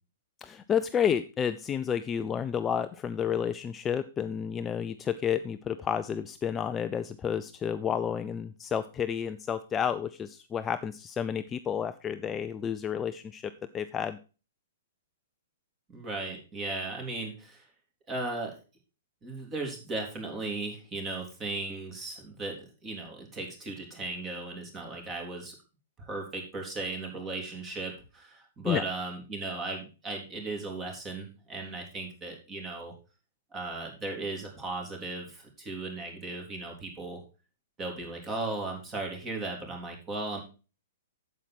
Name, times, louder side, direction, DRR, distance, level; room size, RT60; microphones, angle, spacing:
voice 1, 0.4-14.2 28.6-28.8, left 8 dB, 20° left, 11 dB, 0.5 m, -31 dB
voice 2, 15.9-17.7 18.1-18.6 19.2-25.5 26.0-32.9 33.5-37.2 37.8-40.4, right 2 dB, 20° right, 2 dB, 3.3 m, -36 dB
8.9 x 7.5 x 4.4 m, 0.33 s
figure-of-eight pair, 110°, 0 cm